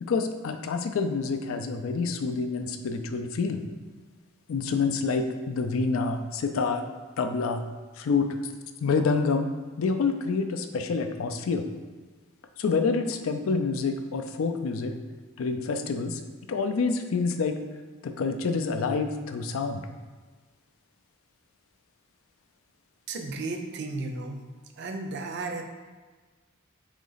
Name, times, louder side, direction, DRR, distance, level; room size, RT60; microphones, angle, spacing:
voice 1, 0.0-3.6 4.5-6.8 7.2-7.6 8.0-8.4 8.8-9.5 9.8-11.7 12.6-15.0 15.4-16.2 16.5-17.6 18.0-19.8, left 4 dB, 70° left, 7 dB, 0.4 m, -27 dB
voice 2, 23.1-24.4 24.8-25.6, right 3 dB, 55° right, 4 dB, 0.5 m, -34 dB
3.9 x 3.1 x 3.9 m, 1.4 s
head